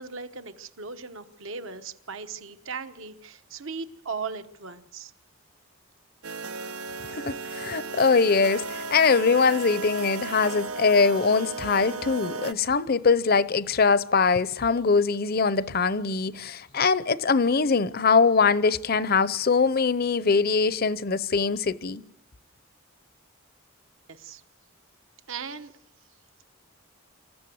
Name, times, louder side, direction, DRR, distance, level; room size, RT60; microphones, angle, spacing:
voice 1, 0.0-5.1 24.1-24.4 25.3-25.7, right 5 dB, 65° right, 1.1 m, -37 dB
sound 1, 6.2-12.5, right 3 dB, 85° right, 0.9 m, -35 dB
voice 2, 7.2-22.0, left 4 dB, 45° left, 0.7 m, -22 dB
26.0 x 14.5 x 7.9 m
head